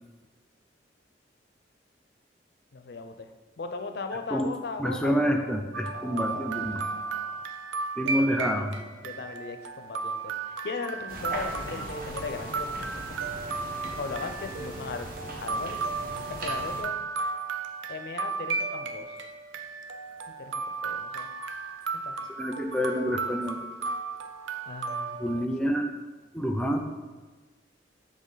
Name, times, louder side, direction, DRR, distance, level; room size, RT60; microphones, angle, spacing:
voice 1, 2.7-5.2 5.9-7.4 8.1-8.7 9.0-13.2 14.0-15.1 15.4-15.9 16.3-17.0 17.9-19.2 20.3-21.3 22.0-22.2 24.7-25.4, left 4 dB, 60° left, 8 dB, 0.5 m, -38 dB
voice 2, 4.8-6.8 8.0-8.7 22.4-23.6 25.2-25.9 26.3-26.8, equal, 5° left, 4 dB, 0.4 m, -27 dB
sound 1, 5.7-25.5, right 4 dB, 85° right, 0.4 m, -34 dB
sound 2, 11.1-16.8, right 1 dB, 50° right, 1.0 m, -39 dB
7.4 x 3.5 x 4.0 m, 1.3 s
head